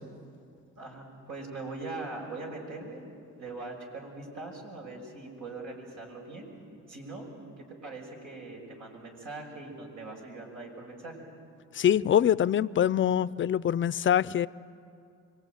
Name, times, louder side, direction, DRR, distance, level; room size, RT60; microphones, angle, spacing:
voice 1, 0.8-3.0 3.4-6.5 6.9-7.3 7.6-11.3, right 3 dB, 80° right, 6.2 m, -41 dB
voice 2, 11.7-14.5, left 10 dB, 40° left, 0.5 m, -24 dB
25.5 x 22.5 x 9.1 m
cardioid pair, 90°, 30 cm